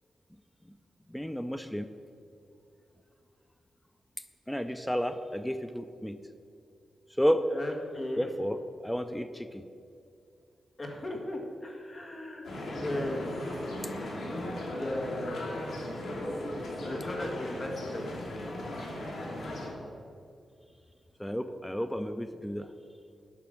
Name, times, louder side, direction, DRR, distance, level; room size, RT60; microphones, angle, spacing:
voice 1, 1.1-1.9 4.5-6.2 7.2-7.4 8.2-9.6 21.2-22.7, equal, 5° left, 10 dB, 0.4 m, -31 dB
voice 2, 7.5-8.3 10.8-13.2 13.9-15.5 16.8-18.2, left 1 dB, 30° left, 2 dB, 1.6 m, -37 dB
sound 1, 12.4-19.7, left 1 dB, 75° left, 2.6 m, -37 dB
10.5 x 6.0 x 7.6 m, 2.4 s
wide cardioid pair, 115°, 0 cm